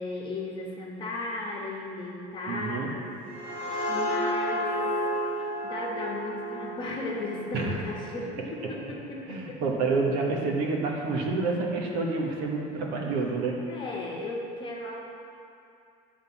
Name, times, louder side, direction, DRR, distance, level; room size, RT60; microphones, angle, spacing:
voice 1, 0.0-3.0 3.9-4.7 5.6-9.6 13.6-15.0, left 2 dB, 25° left, -3 dB, 1.2 m, -35 dB
voice 2, 2.5-2.9 7.5-7.8 8.6-8.7 9.3-13.6, right 3 dB, 60° right, 0 dB, 1.3 m, -28 dB
sound 1, 3.0-8.5, equal, 35° right, 2.3 m, -32 dB
10.5 x 3.8 x 7.2 m, 2.5 s
cardioid pair, 165°, 19 cm